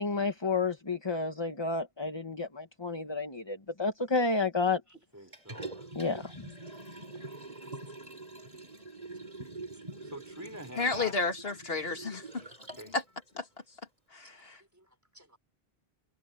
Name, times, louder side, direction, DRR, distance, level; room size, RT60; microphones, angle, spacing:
voice 1, 0.0-4.8 5.9-6.3, left 3 dB, 25° left, 1.4 m, -30 dB
voice 2, 5.1-5.8 10.1-11.2 12.8-12.9 15.2-15.3, right 1 dB, 15° right, 3.6 m, -44 dB
Liquid, 5.3-13.0 13.4-13.5, right 2 dB, 40° right, 4.6 m, -45 dB
voice 3, 10.7-12.2 12.9-13.0 13.4-13.5 14.1-14.6, left 3 dB, 70° left, 2.4 m, -31 dB
omnidirectional pair, 1.0 m